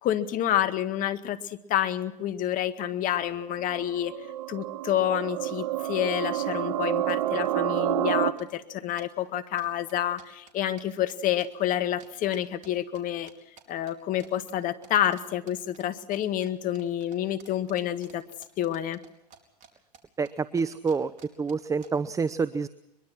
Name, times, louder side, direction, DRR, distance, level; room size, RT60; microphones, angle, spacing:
voice 1, 0.0-4.1 4.5-13.3 13.7-18.2 18.6-19.0, left 11 dB, 40° left, 10 dB, 1.9 m, -28 dB
sound 1, 3.2-8.3, right 13 dB, 65° right, 1.2 m, -29 dB
sound 2, 5.8-5.9 6.1-6.5 6.7-7.5 7.8-8.1 8.4-13.0 13.3-13.9 14.2-14.6 14.8-15.2 15.5-19.7 19.9-21.9, right 7 dB, 35° right, 4.4 m, -53 dB
voice 2, 20.2-21.1 21.4-22.7, right 5 dB, 15° right, 15 dB, 0.7 m, -27 dB
23.0 x 23.0 x 6.1 m, 0.86 s
hypercardioid pair, 90°, 21 cm